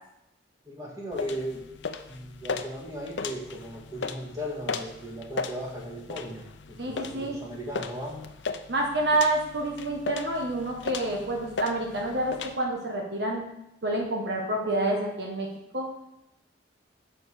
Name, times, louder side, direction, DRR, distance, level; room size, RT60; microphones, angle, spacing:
voice 1, 0.6-1.7 2.1-6.5 6.9-8.2, equal, 20° right, -3 dB, 1.8 m, -36 dB
sound 1, 1.1-12.5, left 4 dB, 75° left, 0.6 m, -37 dB
voice 2, 6.8-7.4 8.7-13.5 13.8-15.5 15.7-15.9, right 1 dB, 60° right, 0 dB, 1.3 m, -28 dB
6.9 x 5.3 x 6.5 m, 0.85 s
head